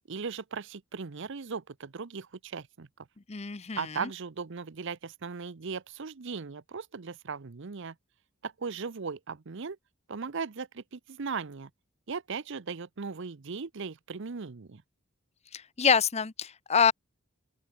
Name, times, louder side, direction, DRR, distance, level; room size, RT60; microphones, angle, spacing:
voice 1, 0.0-2.9 3.8-7.9 8.4-9.8 10.1-11.7 12.1-14.8, right 5 dB, 65° right, 0.7 m, -38 dB
voice 2, 3.3-4.1 15.5-16.9, left 6 dB, 30° left, 0.7 m, -26 dB
open air
head